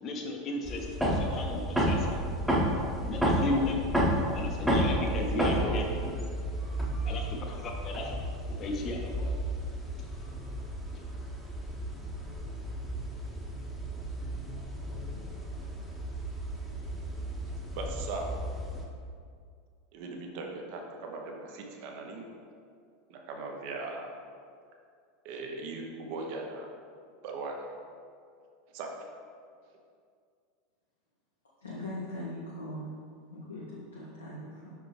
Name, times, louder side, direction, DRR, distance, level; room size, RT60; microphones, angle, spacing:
voice 1, 0.0-2.2 3.1-3.8 4.3-5.9 7.0-8.2 8.6-9.3, left 2 dB, 35° left, 1 dB, 0.9 m, -35 dB
sound 1, 0.7-18.9, equal, ahead, 1.0 m, -32 dB
voice 2, 17.7-18.4 19.9-22.3 23.1-24.2 25.2-26.7 27.2-27.6 28.7-29.1, right 3 dB, 50° right, 2 dB, 0.8 m, -39 dB
voice 3, 31.6-32.9 33.3-34.7, left 1 dB, 80° left, -8 dB, 1.0 m, -40 dB
6.0 x 5.2 x 3.3 m, 2.2 s
figure-of-eight pair, 80°, 0 cm